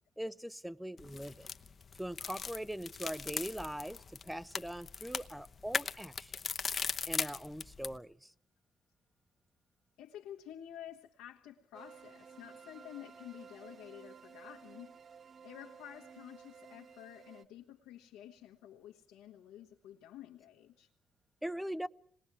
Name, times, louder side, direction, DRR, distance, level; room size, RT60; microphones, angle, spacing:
voice 1, 0.2-1.5 2.0-6.3 7.1-8.3 21.4-21.9, equal, 5° right, 0.7 m, -41 dB
sound 1, 1.0-8.0, left 5 dB, 45° left, 0.9 m, -39 dB
voice 2, 10.0-15.0 15.4-20.9, left 11 dB, 85° left, 1.4 m, -51 dB
sound 2, 11.7-17.5, right 6 dB, 50° right, 0.8 m, -54 dB
26.5 x 20.5 x 4.8 m
supercardioid pair, 60°, 0 cm